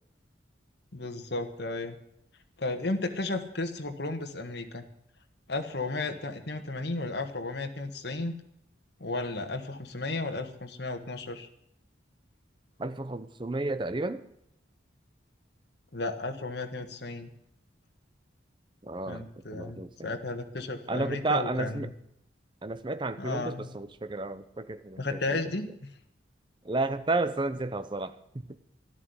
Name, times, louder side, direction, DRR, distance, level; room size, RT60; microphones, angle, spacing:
voice 1, 0.9-1.9 2.6-4.8 5.5-8.4 9.0-11.5 15.9-17.3 19.1-21.9 23.2-23.7 25.0-25.9, left 2 dB, 60° left, 6 dB, 1.5 m, -34 dB
voice 2, 12.8-14.2 18.8-19.2 19.5-20.1 20.9-21.9 22.6-25.4 26.6-28.2 28.5-28.6, right 2 dB, 25° right, 12 dB, 0.7 m, -32 dB
12.0 x 12.0 x 8.0 m, 0.76 s
head